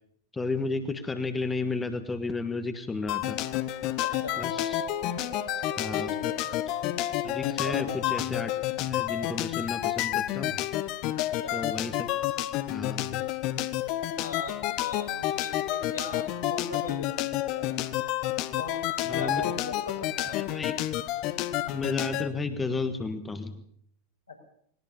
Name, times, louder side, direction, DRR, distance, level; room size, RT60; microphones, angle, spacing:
voice 1, 0.3-3.4 4.4-4.9 5.8-6.1 7.2-8.5 8.9-10.6 11.5-12.1 12.7-13.2 19.0-19.4 20.4-20.8 21.7-23.6, left 3 dB, 10° left, 9 dB, 1.5 m, -33 dB
sound 1, 2.9-12.4, right 14 dB, 45° right, 1.6 m, -48 dB
sound 2, 3.1-22.3, left 14 dB, 40° left, 1.1 m, -30 dB
voice 2, 4.0-4.4 5.9-6.4 7.6-8.0 11.2-11.6 14.2-17.7 18.5-20.6 24.3-24.4, left 4 dB, 80° left, 1 dB, 5.4 m, -39 dB
20.0 x 19.0 x 6.9 m, 0.64 s
figure-of-eight pair, 90°, 0 cm